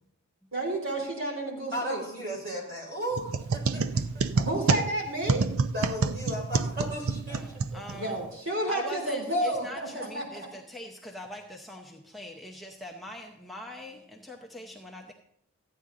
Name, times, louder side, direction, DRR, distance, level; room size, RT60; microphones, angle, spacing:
voice 1, 0.5-2.0 4.3-5.4 7.9-10.5, right 1 dB, 60° right, 3.2 m, -31 dB
voice 2, 1.7-4.0 5.7-7.8, equal, 45° right, 4.2 m, -35 dB
sound 1, 3.1-8.3, right 4 dB, 75° right, 0.5 m, -28 dB
voice 3, 7.3-8.2 8.7-15.1, left 1 dB, ahead, 0.7 m, -42 dB
14.0 x 9.4 x 3.7 m
head